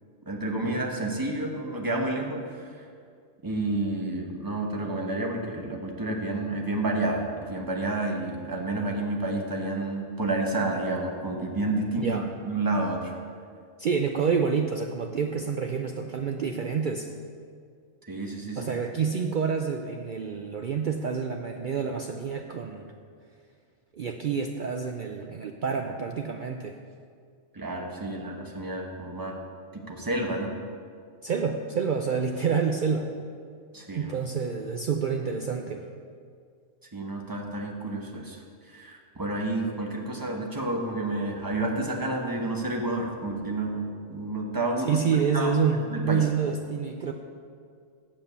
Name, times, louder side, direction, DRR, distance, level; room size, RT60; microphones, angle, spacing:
voice 1, 0.3-2.4 3.4-13.1 18.1-18.7 27.5-29.4 29.7-30.5 33.7-34.1 36.9-38.4 38.7-45.0 45.3-45.6 45.9-46.3, right 2 dB, 20° right, 1 dB, 0.9 m, -30 dB
voice 2, 13.8-17.1 18.6-22.9 23.9-26.8 31.2-33.1 33.9-35.8 44.8-47.1, right 6 dB, 70° right, 3 dB, 0.4 m, -28 dB
7.4 x 7.3 x 6.8 m, 2.2 s
omnidirectional pair, 1.4 m